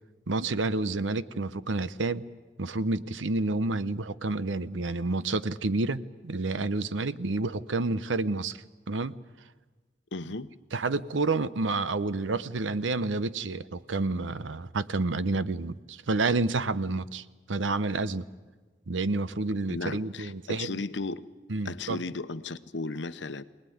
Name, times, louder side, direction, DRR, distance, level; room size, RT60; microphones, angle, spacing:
voice 1, 0.3-2.2 2.6-9.1 10.7-18.2 18.9-20.7 21.5-22.0, right 3 dB, 90° right, 15 dB, 0.8 m, -29 dB
voice 2, 10.1-10.5 19.7-21.2 21.6-23.4, left 3 dB, 75° left, 12 dB, 0.9 m, -35 dB
24.0 x 19.5 x 9.3 m, 1.3 s
head